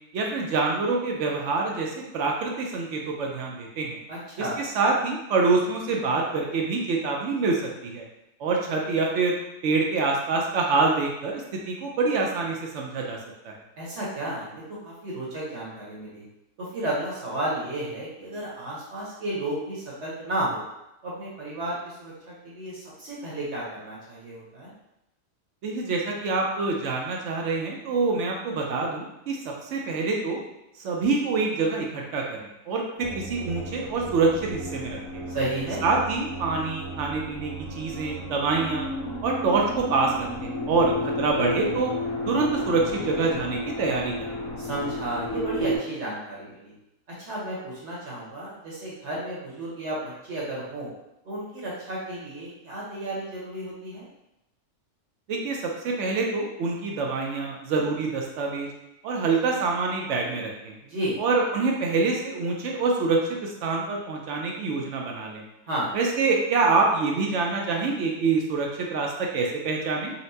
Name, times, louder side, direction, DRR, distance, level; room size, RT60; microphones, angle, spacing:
voice 1, 0.1-4.0 4.4-8.0 8.4-9.3 9.6-13.2 13.4-13.5 25.6-30.4 30.8-35.2 35.8-38.9 39.2-41.9 42.3-44.1 55.3-58.7 59.0-60.7 61.2-65.4 65.9-70.1, right 3 dB, 70° right, 0 dB, 0.7 m, -26 dB
voice 2, 4.1-4.5 13.8-16.2 16.6-20.6 21.0-24.7 35.3-35.8 44.6-46.7 47.2-50.9 51.2-54.1 60.8-61.2 65.7-65.9, right 1 dB, 55° right, -6 dB, 1.0 m, -32 dB
sound 1, 33.0-45.8, left 1 dB, 65° left, 1.4 m, -33 dB
4.0 x 2.1 x 2.6 m, 0.88 s
omnidirectional pair, 1.6 m